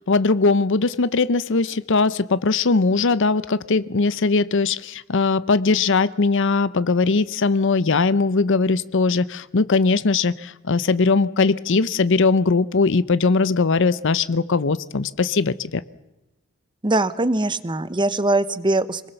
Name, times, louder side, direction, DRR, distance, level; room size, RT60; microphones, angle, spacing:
voice 1, 0.0-15.8, left 4 dB, 60° left, 16 dB, 0.7 m, -20 dB
voice 2, 16.8-19.1, right 2 dB, 20° right, 15 dB, 1.0 m, -22 dB
26.0 x 20.0 x 7.0 m, 0.96 s
head